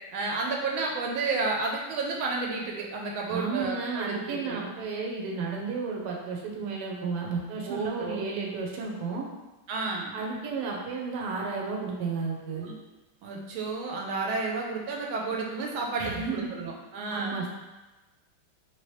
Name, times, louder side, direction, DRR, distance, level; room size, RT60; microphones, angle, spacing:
voice 1, 0.1-4.6 7.6-8.2 9.7-10.1 12.5-12.8 13.2-17.4, right 3 dB, 85° right, -1 dB, 1.4 m, -31 dB
voice 2, 3.3-9.2 10.1-12.6 16.0-16.5 17.1-17.5, right 4 dB, 70° right, -1 dB, 1.2 m, -32 dB
3.1 x 2.9 x 3.1 m, 1.1 s
omnidirectional pair, 2.2 m